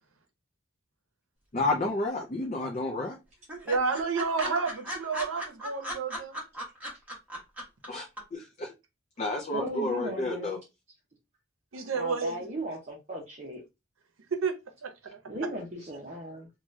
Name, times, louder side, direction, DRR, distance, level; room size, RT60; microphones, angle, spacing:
voice 1, 1.5-3.2 7.9-8.1 8.3-8.7 9.2-10.6, left 2 dB, 35° left, 0.4 m, -30 dB
sound 1, 1.8-2.5 2.7-2.8 3.1-3.2 3.5-7.9 8.2-8.3, equal, 5° right, 1.0 m, -37 dB
voice 2, 3.6-6.4 11.7-12.4 14.3-15.2, right 4 dB, 80° right, 0.7 m, -30 dB
voice 3, 9.5-10.6 11.9-13.6 15.3-16.5, equal, 35° right, 0.6 m, -37 dB
2.7 x 2.3 x 3.1 m
head